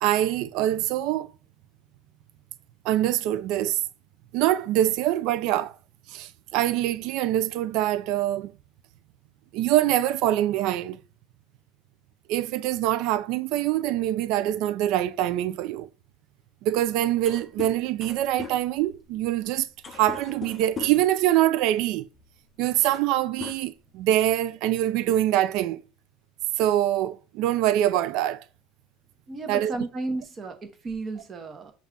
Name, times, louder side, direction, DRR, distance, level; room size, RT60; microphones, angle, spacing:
voice 1, 0.0-1.3 2.8-3.8 4.3-5.8 6.1-8.5 9.5-11.0 12.3-15.9 16.6-22.1 22.6-25.8 26.6-28.4 29.5-29.7, right 13 dB, 60° right, 0.4 m, -24 dB
sound 1, 16.8-16.9 17.1-21.1 22.1-22.3 22.7-23.1 23.4-24.3, left 6 dB, 20° left, 0.4 m, -40 dB
voice 2, 29.3-31.7, right 3 dB, 25° right, 0.7 m, -33 dB
5.5 x 2.4 x 3.6 m
cardioid pair, 165°, 0 cm